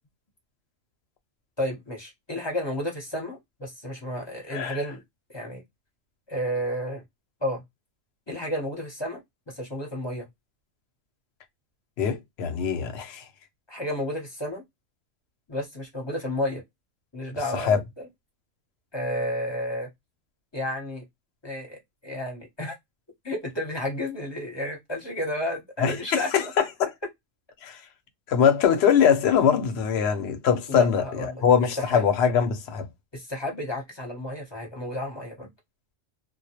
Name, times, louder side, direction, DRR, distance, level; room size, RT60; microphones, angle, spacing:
voice 1, 1.6-5.0 5.3-5.6 6.3-7.0 7.4-7.6 8.3-9.2 9.5-10.3 13.7-14.6 15.5-16.6 17.1-18.1 18.9-19.9 20.5-21.0 21.4-22.7 23.2-26.5 30.7-31.4 31.8-32.1 33.1-35.5, left 1 dB, 25° left, 0.7 m, -31 dB
voice 2, 12.0-13.2 17.5-17.8 25.8-26.9 27.6-27.8 28.3-32.9, left 7 dB, 60° left, 0.7 m, -22 dB
2.2 x 2.1 x 2.8 m
omnidirectional pair, 1.4 m